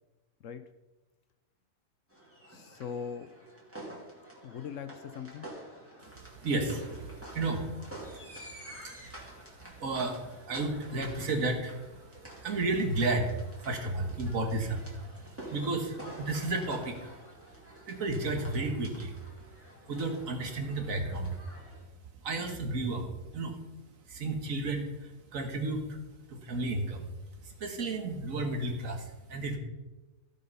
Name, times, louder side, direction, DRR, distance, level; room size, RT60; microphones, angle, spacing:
sound 1, 2.1-21.8, right 1 dB, 10° right, 2.6 m, -49 dB
voice 1, 2.5-3.3 4.4-5.5, left 7 dB, 65° left, 10 dB, 0.9 m, -40 dB
voice 2, 6.0-8.4 8.7-17.1 17.9-19.2 19.9-21.4 22.2-23.1 23.3-23.6 24.1-26.0 26.3-27.1 27.4-29.6, right 2 dB, 60° right, 4 dB, 1.8 m, -33 dB
15.5 x 5.4 x 5.4 m, 1.1 s
omnidirectional pair, 1.6 m